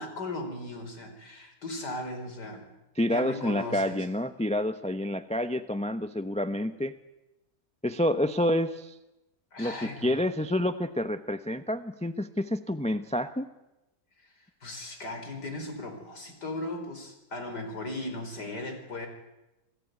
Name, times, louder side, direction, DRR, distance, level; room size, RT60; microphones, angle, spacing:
voice 1, 0.0-2.7 3.1-4.0 9.5-10.2 14.6-19.1, left 2 dB, 90° left, 5 dB, 5.3 m, -37 dB
voice 2, 3.0-6.9 7.8-9.0 9.6-13.5, left 1 dB, 5° left, 10 dB, 0.6 m, -28 dB
27.5 x 17.0 x 9.4 m, 0.96 s
omnidirectional pair, 1.7 m